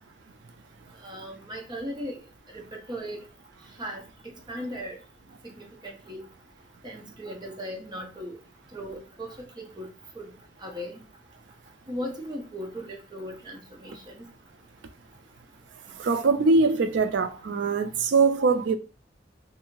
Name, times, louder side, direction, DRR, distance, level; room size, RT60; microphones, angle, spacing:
voice 1, 1.0-2.2 2.7-3.2 3.8-4.0 4.5-5.0 5.4-6.3 6.8-8.4 8.7-9.9 10.2-10.3 10.6-11.0 11.9-14.3, equal, 25° right, 0.7 m, -37 dB
voice 2, 16.0-18.8, right 4 dB, 75° right, 0.4 m, -22 dB
2.7 x 2.7 x 2.9 m
head